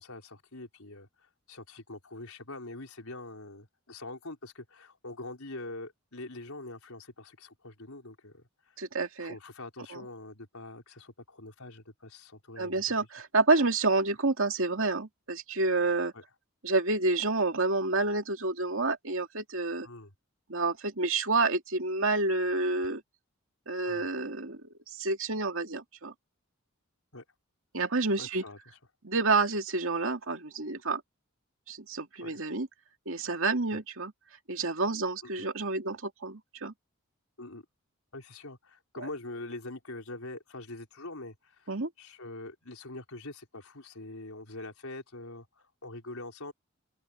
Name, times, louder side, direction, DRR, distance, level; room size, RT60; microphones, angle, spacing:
voice 1, 0.0-8.8 9.2-12.8 16.1-16.2 19.8-20.1 23.8-24.1 27.1-27.2 28.2-28.8 32.2-32.4 33.7-33.8 35.4-35.5 37.4-37.6 38.1-41.7 42.0-46.5, left 2 dB, 85° left, 4.9 m, -44 dB
voice 2, 8.8-9.4 9.9-10.0 12.6-16.1 16.6-19.9 20.5-23.0 23.7-26.1 27.7-28.4 29.0-31.0 31.7-32.7 33.1-34.1 34.5-36.7 41.7-41.9, right 3 dB, 70° right, 2.4 m, -29 dB
open air
head